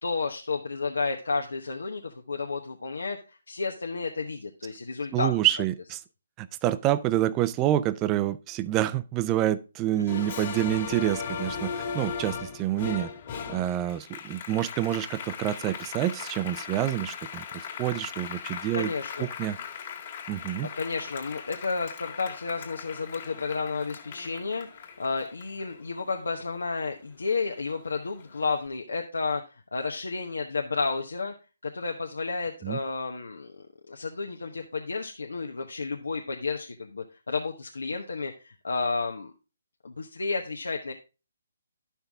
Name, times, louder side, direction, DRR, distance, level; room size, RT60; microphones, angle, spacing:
voice 1, 0.0-3.2 3.5-5.3 10.0-10.3 18.7-19.3 20.6-31.3 31.6-33.5 33.9-39.3 39.8-40.9, left 4 dB, 85° left, 2 dB, 1.0 m, -31 dB
voice 2, 5.1-6.0 6.4-13.1 13.5-17.4 17.8-18.9 19.2-19.6 20.3-20.7 32.6-32.8, right 13 dB, 20° right, 14 dB, 0.4 m, -27 dB
Applause, 10.1-26.9 27.3-28.4, left 7 dB, 40° left, 1.8 m, -38 dB
11.0 x 5.9 x 3.5 m, 0.30 s
hypercardioid pair, 155°, 0 cm